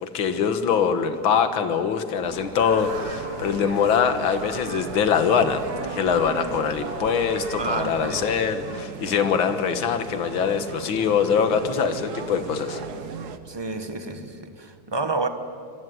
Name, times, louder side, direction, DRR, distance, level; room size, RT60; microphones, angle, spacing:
voice 1, 0.0-5.6 5.9-12.8, left 7 dB, 65° left, 9 dB, 2.2 m, -23 dB
sound 1, 2.2-8.1, equal, 40° left, 6.5 m, -39 dB
sound 2, 2.7-13.4, right 6 dB, 55° right, 1.4 m, -37 dB
voice 2, 7.6-8.5 13.5-15.3, right 3 dB, 15° right, 9 dB, 0.9 m, -30 dB
25.0 x 22.5 x 9.5 m, 2.5 s
omnidirectional pair, 2.4 m